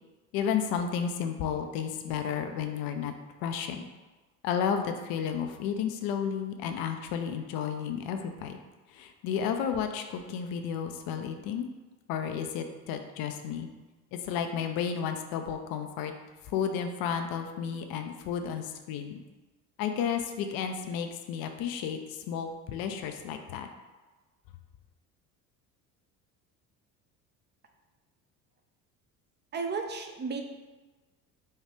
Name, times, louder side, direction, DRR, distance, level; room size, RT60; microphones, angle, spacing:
voice 1, 0.3-3.1 3.4-3.9 4.4-8.6 8.9-11.7 12.1-13.7 14.1-16.1 16.5-19.2 19.8-23.7, left 7 dB, 55° left, 6 dB, 0.5 m, -32 dB
voice 2, 29.5-30.4, right 4 dB, 25° right, 4 dB, 0.5 m, -33 dB
4.2 x 2.3 x 3.5 m, 1.2 s
hypercardioid pair, 70°, 44 cm